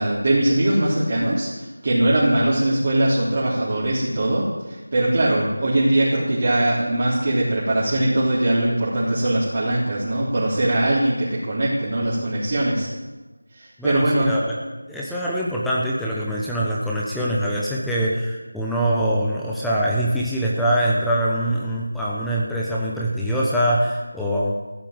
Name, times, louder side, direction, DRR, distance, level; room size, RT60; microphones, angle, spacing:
voice 1, 0.0-12.9 13.5-14.3, right 1 dB, 35° right, -8 dB, 3.6 m, -21 dB
voice 2, 13.8-14.6 14.9-24.5, right 1 dB, ahead, -6 dB, 0.9 m, -23 dB
14.5 x 10.5 x 8.0 m, 1.2 s
figure-of-eight pair, 175°, 0 cm